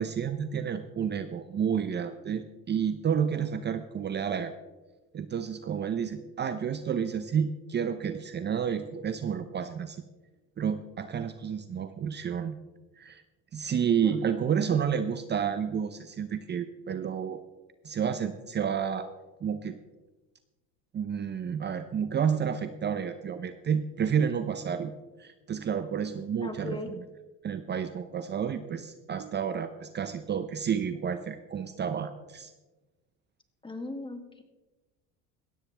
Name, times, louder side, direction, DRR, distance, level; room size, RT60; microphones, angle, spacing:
voice 1, 0.0-4.5 5.1-10.0 10.6-12.6 13.0-13.2 13.5-17.4 17.8-19.1 19.4-19.8 20.9-24.9 25.2-27.0 27.4-32.5, right 7 dB, 35° right, 10 dB, 0.7 m, -30 dB
voice 2, 14.0-14.8 26.4-26.9 33.6-34.4, left 2 dB, 15° left, 5 dB, 2.1 m, -39 dB
17.5 x 13.5 x 3.5 m, 1.2 s
supercardioid pair, 100°, 32 cm